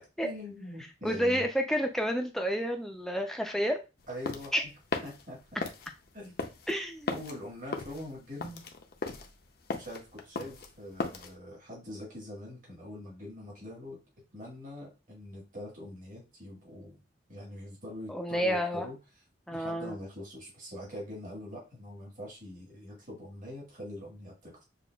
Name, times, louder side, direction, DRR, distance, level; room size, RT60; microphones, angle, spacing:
voice 1, 0.2-1.5 4.1-4.7 5.0-5.6 6.1-6.4 7.1-8.7 9.7-14.0 14.3-17.0 17.3-19.0 19.5-24.6, left 1 dB, 45° right, -3 dB, 1.5 m, -43 dB
voice 2, 1.0-3.8 4.5-4.6 6.7-7.2 18.1-18.9 19.5-20.0, equal, ahead, 3 dB, 0.4 m, -30 dB
sound 1, 4.0-11.3, left 3 dB, 55° left, 0.5 m, -37 dB
6.8 x 2.3 x 2.2 m, 0.28 s
head